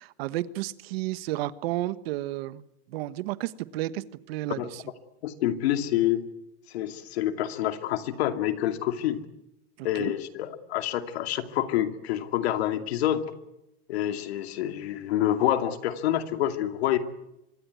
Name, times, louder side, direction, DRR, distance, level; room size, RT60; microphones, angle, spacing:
voice 1, 0.0-2.6 2.9-4.8 9.8-10.1, right 15 dB, 75° right, 15 dB, 1.3 m, -32 dB
voice 2, 5.2-6.2 6.7-9.2 9.8-13.2 13.9-17.0, left 12 dB, 85° left, 8 dB, 2.5 m, -27 dB
25.0 x 22.5 x 9.4 m, 0.89 s
supercardioid pair, 145°, 31 cm